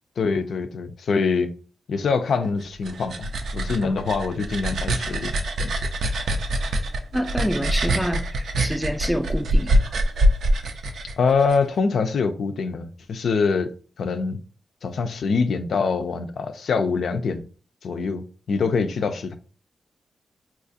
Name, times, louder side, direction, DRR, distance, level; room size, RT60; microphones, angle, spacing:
voice 1, 0.2-1.5 1.9-5.7 11.2-13.7 14.0-14.4 14.8-17.5 17.8-19.4, left 4 dB, 80° left, 0.4 m, -24 dB
sound 1, 2.6-11.6, right 1 dB, 85° right, 0.4 m, -24 dB
voice 2, 7.1-8.2 8.6-9.9, equal, 5° right, 0.4 m, -27 dB
4.2 x 2.4 x 2.7 m
cardioid pair, 60°, 0 cm